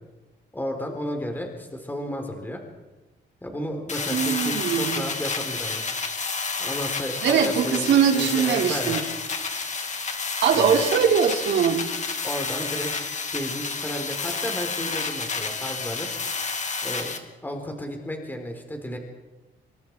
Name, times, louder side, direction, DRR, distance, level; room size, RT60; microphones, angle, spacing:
voice 1, 0.5-2.6 3.4-5.8 6.6-7.9 8.1-9.2 10.5-10.8 12.2-12.9 13.3-16.1 16.8-17.1 17.4-19.0, equal, 10° left, 3 dB, 4.3 m, -33 dB
sound 1, 3.9-17.2, left 4 dB, 40° left, 3.1 m, -30 dB
voice 2, 4.1-5.1 7.2-9.0 10.4-11.9, right 7 dB, 75° right, 2 dB, 4.2 m, -21 dB
28.0 x 26.0 x 4.8 m, 1.1 s
cardioid pair, 110°, 19 cm